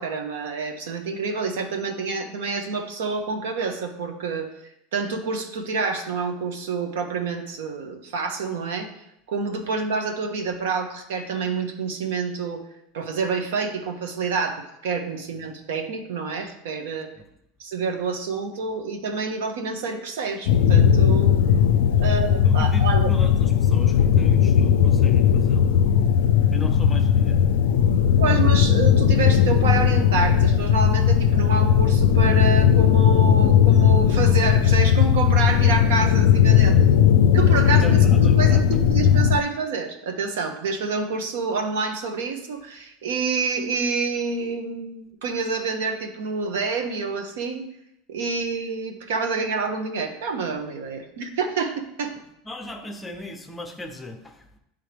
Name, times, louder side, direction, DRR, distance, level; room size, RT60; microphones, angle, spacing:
voice 1, 0.0-4.5 4.9-8.9 9.3-12.6 12.9-17.1 17.6-21.3 22.0-23.1 28.2-36.7 37.3-38.6 38.9-47.7 48.1-52.2, right 4 dB, 85° right, 4 dB, 1.1 m, -28 dB
sound 1, 20.5-39.4, left 8 dB, 75° left, 0.4 m, -17 dB
voice 2, 22.4-25.8 26.2-27.4 36.5-36.6 37.8-38.7 52.1-54.6, left 1 dB, 10° left, 5 dB, 0.8 m, -37 dB
9.0 x 3.7 x 3.5 m, 0.82 s
supercardioid pair, 130°, 0 cm